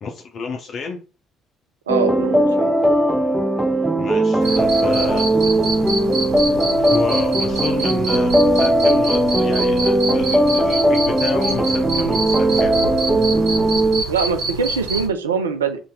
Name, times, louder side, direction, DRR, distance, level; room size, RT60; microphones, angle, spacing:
voice 1, 0.0-1.0 4.0-5.3 6.8-12.7, left 4 dB, 50° left, 3 dB, 0.6 m, -30 dB
sound 1, 1.9-14.0, right 1 dB, 10° right, 0.6 m, -18 dB
voice 2, 1.9-2.7 14.1-15.8, right 6 dB, 80° right, 8 dB, 0.4 m, -23 dB
Cricket, 4.4-15.1, right 2 dB, 65° right, 1.2 m, -27 dB
3.0 x 2.8 x 3.7 m, 0.34 s
figure-of-eight pair, 50°, 0 cm